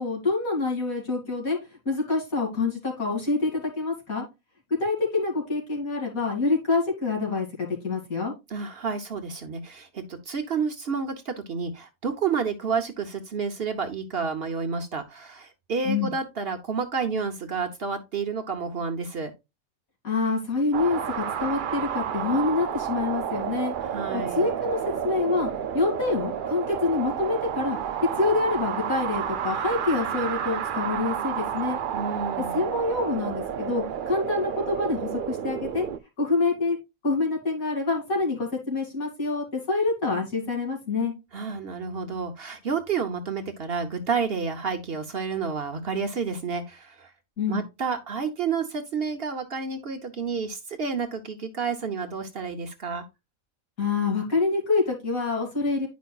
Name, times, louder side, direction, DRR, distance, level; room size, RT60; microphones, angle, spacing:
voice 1, 0.0-1.6 1.8-4.2 4.8-8.3 15.8-16.1 20.0-23.7 24.1-24.8 25.0-25.5 25.7-27.8 28.2-31.8 32.5-35.8 36.2-36.8 37.0-41.1 47.4-47.6 53.8-55.9, left 3 dB, 75° left, 3.0 m, -26 dB
voice 2, 8.5-19.3 23.8-24.5 31.9-32.7 41.3-47.1 47.5-53.0, right 5 dB, 50° right, 0.9 m, -30 dB
sound 1, 20.7-36.0, right 8 dB, 85° right, 0.4 m, -30 dB
10.5 x 5.2 x 2.3 m
omnidirectional pair, 1.5 m